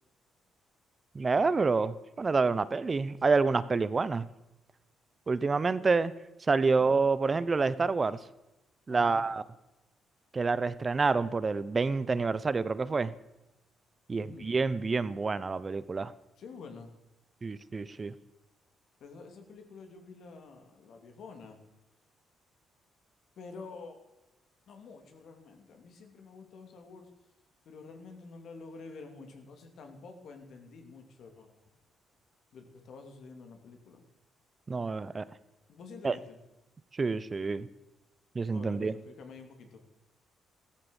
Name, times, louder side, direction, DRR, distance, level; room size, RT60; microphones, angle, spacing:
voice 1, 1.1-4.2 5.3-6.1 6.5-8.2 8.9-9.4 10.3-13.1 14.1-16.1 17.4-18.1 34.7-35.2 36.0-36.2 37.0-37.7 38.3-38.9, right 4 dB, 30° right, 16 dB, 0.8 m, -28 dB
voice 2, 8.9-9.2 14.1-14.5 16.4-16.9 19.0-21.6 23.4-24.0 24.7-27.1 27.6-31.5 32.5-34.0 35.7-36.4 38.5-39.8, left 4 dB, 70° left, 5 dB, 3.1 m, -48 dB
15.0 x 13.0 x 7.2 m, 0.96 s
cardioid pair, 90°, 0 cm